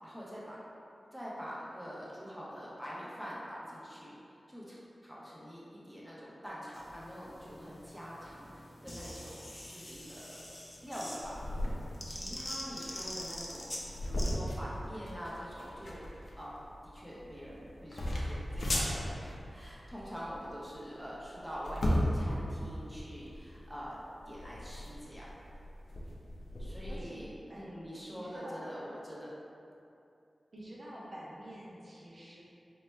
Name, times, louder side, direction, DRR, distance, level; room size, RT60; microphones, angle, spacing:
voice 1, 0.0-0.6 1.1-4.8 5.0-10.4 10.8-11.7 12.0-16.0 16.4-16.6 16.8-24.0 24.2-25.3 26.6-29.3, equal, 5° right, -7 dB, 1.2 m, -45 dB
sound 1, 6.7-14.3, left 1 dB, 35° left, 0.8 m, -45 dB
sound 2, 11.2-27.0, equal, 70° left, 0.7 m, -37 dB
voice 2, 26.9-27.8 28.1-28.6 30.5-32.4, equal, 65° right, -6 dB, 0.7 m, -48 dB
4.3 x 2.9 x 3.3 m, 2.7 s
cardioid pair, 40°, 0 cm